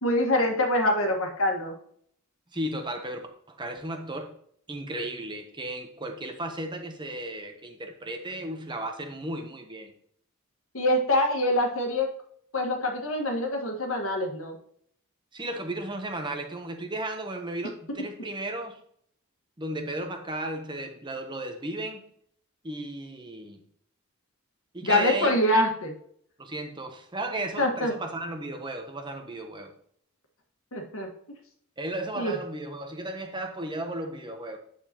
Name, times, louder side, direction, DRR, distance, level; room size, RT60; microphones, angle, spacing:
voice 1, 0.0-1.8 10.7-12.1 12.5-14.6 24.8-25.9 27.6-27.9 30.7-31.1 32.1-32.3, left 1 dB, 70° left, 2 dB, 1.7 m, -25 dB
voice 2, 2.5-4.3 4.7-9.9 15.3-18.8 19.6-22.0 22.6-23.6 24.7-25.4 26.4-29.7 31.8-34.6, right 1 dB, 20° right, 5 dB, 0.9 m, -35 dB
9.1 x 6.9 x 2.9 m, 0.64 s
head